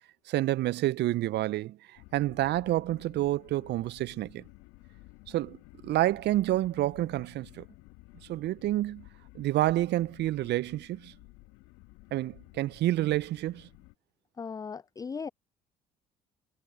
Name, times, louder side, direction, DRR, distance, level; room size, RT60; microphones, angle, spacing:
voice 1, 0.3-1.8 2.1-4.4 5.3-5.6 5.8-7.6 8.3-9.1 9.3-11.1 12.1-13.7, right 15 dB, 55° right, 0.7 m, -28 dB
sound 1, 2.0-13.9, left 23 dB, 70° left, 1.9 m, -54 dB
voice 2, 14.4-15.3, left 5 dB, 15° left, 0.4 m, -37 dB
hypercardioid pair, 55°, 21 cm